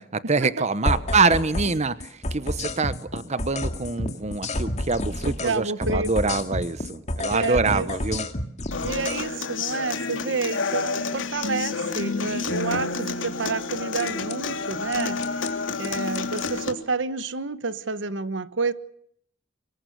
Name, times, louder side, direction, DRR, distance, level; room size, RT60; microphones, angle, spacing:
voice 1, 0.0-8.3, right 4 dB, 35° right, 1.0 m, -25 dB
sound 1, 0.9-1.8 2.0-5.6 5.8-9.2 14.0-14.4 14.9-15.5 15.8-16.5, left 1 dB, 35° left, 2.2 m, -29 dB
voice 2, 5.2-6.3 7.3-7.9 8.8-15.2 15.8-18.7, right 4 dB, 70° right, 1.1 m, -29 dB
Human voice / Acoustic guitar, 8.7-16.7, left 4 dB, 80° left, 3.1 m, -29 dB
24.5 x 21.5 x 6.8 m
head